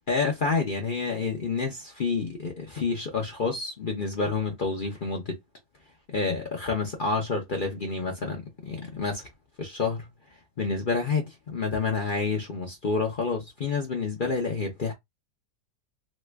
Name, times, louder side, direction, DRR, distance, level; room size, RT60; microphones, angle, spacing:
voice 1, 0.1-5.4 6.1-9.3 9.6-10.1 10.6-14.9, left 4 dB, 45° left, 0.8 m, -28 dB
3.0 x 2.4 x 3.3 m
omnidirectional pair, 1.6 m